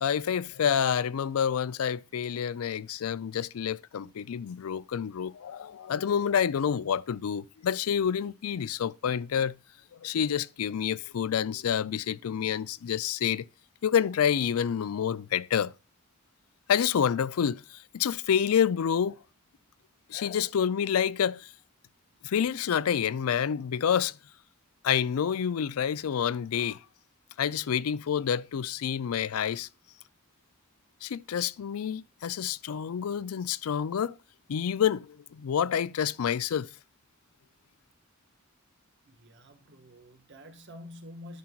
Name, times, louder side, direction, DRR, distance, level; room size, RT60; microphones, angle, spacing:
voice 1, 0.0-9.6 10.0-13.5 13.8-15.7 16.7-19.2 20.1-21.5 22.2-24.1 24.8-26.8 27.4-29.7 31.0-34.2 34.5-36.7, left 8 dB, 90° left, 0.4 m, -28 dB
voice 2, 39.0-41.4, left 1 dB, 55° right, 1.5 m, -48 dB
11.5 x 5.9 x 2.3 m
head